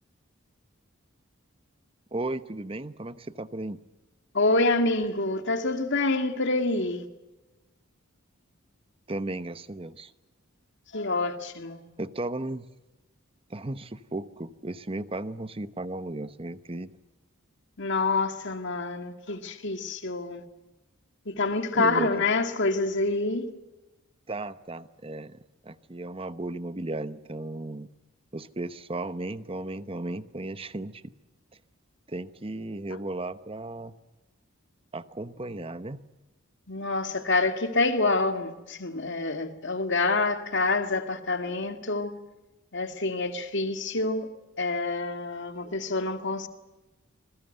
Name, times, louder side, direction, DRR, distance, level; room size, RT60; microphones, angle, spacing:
voice 1, 2.1-3.8 9.1-10.1 12.0-12.7 13.5-16.9 21.7-22.2 24.3-27.9 28.3-31.1 32.1-33.9 34.9-36.0, right 2 dB, 25° right, 0.9 m, -35 dB
voice 2, 4.3-7.1 10.9-11.8 17.8-20.4 21.3-23.5 36.7-42.1 42.7-44.3 44.6-46.5, left 3 dB, 55° left, 2.2 m, -27 dB
27.0 x 21.5 x 7.9 m
head